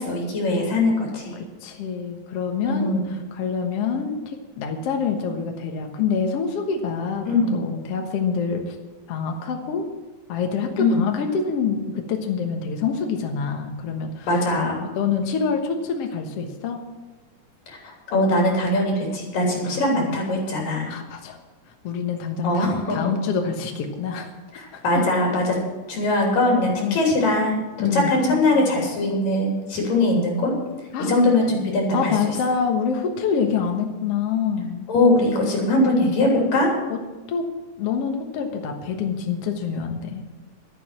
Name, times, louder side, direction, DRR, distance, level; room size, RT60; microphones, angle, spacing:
voice 1, 0.0-1.4 2.7-3.0 7.2-7.6 10.8-11.0 14.3-14.8 17.7-20.9 22.4-23.0 24.5-25.6 25.9-30.5 31.1-32.1 34.9-36.7, left 2 dB, 75° left, -1 dB, 5.0 m, -21 dB
voice 2, 1.6-2.9 3.3-7.3 7.5-8.8 9.1-9.9 10.3-14.3 15.0-16.8 19.6-19.8 20.9-21.4 21.8-24.3 24.7-25.1 26.8-27.0 27.8-28.1 30.9-31.1 31.9-34.9 36.9-37.0 37.3-37.5 37.8-40.2, left 6 dB, 55° left, 3 dB, 1.9 m, -26 dB
12.0 x 10.0 x 7.5 m, 1.2 s
omnidirectional pair, 3.9 m